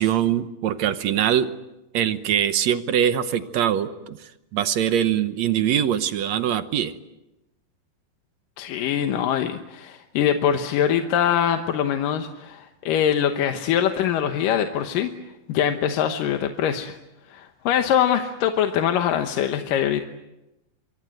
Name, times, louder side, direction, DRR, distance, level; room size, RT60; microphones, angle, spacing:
voice 1, 0.0-1.5 1.9-6.9, right 10 dB, 65° right, 11 dB, 1.8 m, -23 dB
voice 2, 8.6-15.1 15.5-17.0 17.3-20.0, left 9 dB, 70° left, 6 dB, 2.7 m, -23 dB
27.0 x 24.0 x 7.9 m, 0.96 s
omnidirectional pair, 4.2 m